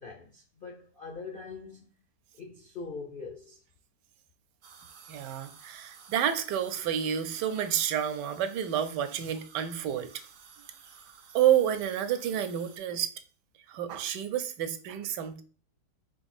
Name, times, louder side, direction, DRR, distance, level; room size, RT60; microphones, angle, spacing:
voice 1, 0.0-1.9 2.4-3.6, left 4 dB, 75° left, 0.4 m, -42 dB
sound 1, 4.6-12.8, right 6 dB, 65° right, 0.9 m, -53 dB
voice 2, 5.1-10.1 11.3-13.1 13.7-15.4, right 10 dB, 80° right, 1.2 m, -29 dB
4.5 x 2.5 x 4.1 m
omnidirectional pair, 1.9 m